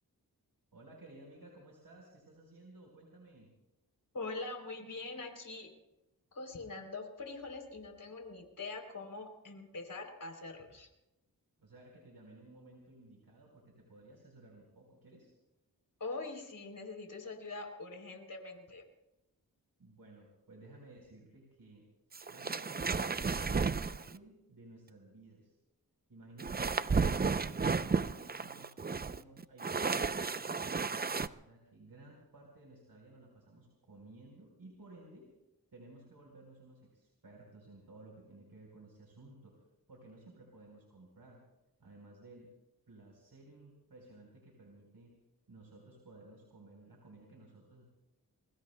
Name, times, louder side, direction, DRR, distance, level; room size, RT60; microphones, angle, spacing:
voice 1, 0.7-3.5 11.6-15.3 19.8-21.8 22.3-23.0 23.3-25.6 26.1-35.3 35.7-39.5 39.9-41.4 41.8-42.5 42.9-45.1 45.5-47.8, right 2 dB, 80° right, -1 dB, 4.2 m, -56 dB
voice 2, 4.1-5.7 6.3-10.9 16.0-18.8, left 3 dB, 60° left, 4 dB, 3.5 m, -43 dB
sound 1, 22.1-24.2 26.4-31.3, right 5 dB, 25° right, 0.5 m, -33 dB
29.5 x 21.5 x 2.2 m, 0.95 s
wide cardioid pair, 65°, 36 cm